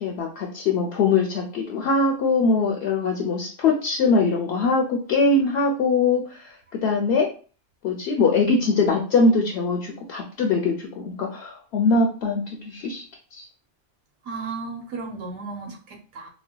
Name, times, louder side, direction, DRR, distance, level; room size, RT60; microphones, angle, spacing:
voice 1, 0.0-7.3 7.8-13.0 13.3-13.4, left 3 dB, 65° left, 1 dB, 0.8 m, -22 dB
voice 2, 14.2-16.3, right 4 dB, 90° right, 2 dB, 1.1 m, -34 dB
4.1 x 2.2 x 2.2 m, 0.39 s
omnidirectional pair, 1.2 m